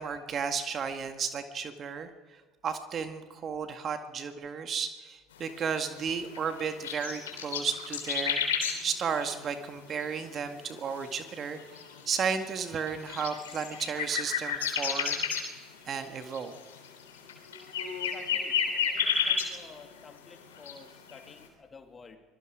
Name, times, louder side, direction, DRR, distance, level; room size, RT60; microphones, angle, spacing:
voice 1, 0.0-2.1 2.6-8.4 8.8-15.3 15.9-16.5, right 6 dB, 40° right, 7 dB, 1.9 m, -33 dB
sound 1, 5.4-20.0 20.3-21.2, left 7 dB, 85° left, 3.4 m, -33 dB
voice 2, 18.1-18.5 18.9-22.2, left 4 dB, 30° left, 5 dB, 2.9 m, -51 dB
25.0 x 20.5 x 5.0 m, 1.4 s
hypercardioid pair, 65°, 0 cm